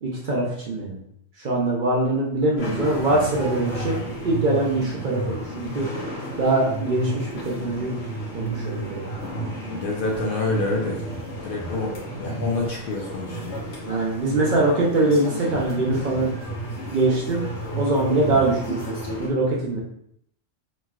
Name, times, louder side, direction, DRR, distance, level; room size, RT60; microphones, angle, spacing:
voice 1, 0.0-1.0 1.4-4.0 4.2-5.9 6.4-7.9 8.3-9.0 13.8-16.3 16.9-17.4 17.8-18.8 19.2-19.8, right 2 dB, 55° right, -3 dB, 0.6 m, -23 dB
sound 1, 2.6-19.3, right 1 dB, 80° left, 1.4 m, -32 dB
voice 2, 9.7-11.0 11.4-13.6 18.3-18.5, left 3 dB, 60° left, -2 dB, 0.7 m, -28 dB
3.1 x 2.6 x 2.3 m, 0.70 s
omnidirectional pair, 1.2 m